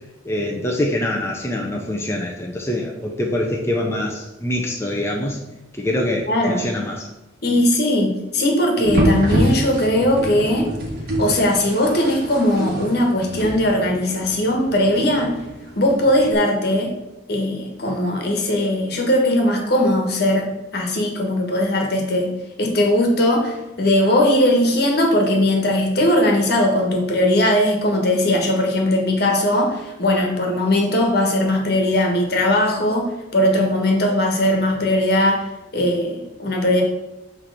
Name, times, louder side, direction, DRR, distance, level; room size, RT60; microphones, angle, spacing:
voice 1, 0.2-5.4 5.7-7.1, left 1 dB, 15° left, -1 dB, 0.6 m, -24 dB
voice 2, 6.3-6.7 7.4-10.7 11.2-15.4 15.7-16.9 17.3-22.3 22.6-35.5 35.7-36.8, left 1 dB, 55° left, 1 dB, 1.3 m, -19 dB
sound 1, 8.8-16.3, right 1 dB, 55° right, 1.4 m, -26 dB
6.2 x 3.3 x 5.9 m, 0.99 s
head